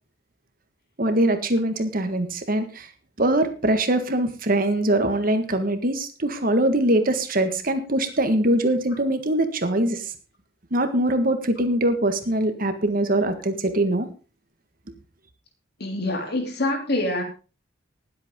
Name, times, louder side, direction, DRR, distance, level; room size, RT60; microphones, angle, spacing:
voice 1, 1.0-2.9 3.2-10.1 10.7-14.1, right 1 dB, 50° right, 8 dB, 1.6 m, -22 dB
voice 2, 15.8-17.2, left 2 dB, 55° left, 4 dB, 3.1 m, -25 dB
19.5 x 8.2 x 3.7 m, 0.34 s
head